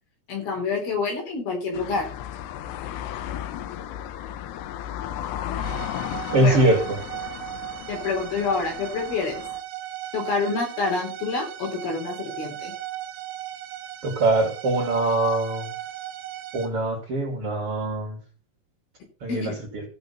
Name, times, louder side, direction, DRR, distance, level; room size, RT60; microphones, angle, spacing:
voice 1, 0.3-2.1 6.4-6.6 7.9-9.4 10.1-12.8 19.3-19.5, left 4 dB, 65° left, 2 dB, 5.6 m, -27 dB
sound 1, 1.7-9.6, left 10 dB, 90° left, 3.1 m, -34 dB
sound 2, 5.6-16.7, right 13 dB, 75° right, 3.1 m, -37 dB
voice 2, 6.3-7.0 14.0-15.7 16.5-18.2 19.2-19.8, right 2 dB, 40° right, 1 dB, 3.1 m, -23 dB
15.0 x 6.8 x 5.5 m, 0.35 s
omnidirectional pair, 4.6 m